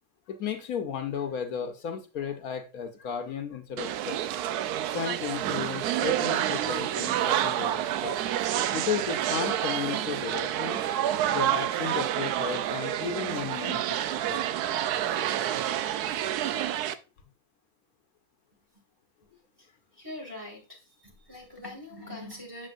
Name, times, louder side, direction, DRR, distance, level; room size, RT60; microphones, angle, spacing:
voice 1, 0.3-4.2 4.9-8.2 8.7-10.8 11.3-14.0 14.3-14.4, left 7 dB, 75° left, 1.3 m, -34 dB
sound 1, 3.8-16.9, right 11 dB, 90° right, 1.1 m, -28 dB
voice 2, 20.0-22.7, left 1 dB, 15° right, 2.4 m, -42 dB
7.6 x 7.0 x 2.5 m
omnidirectional pair, 1.6 m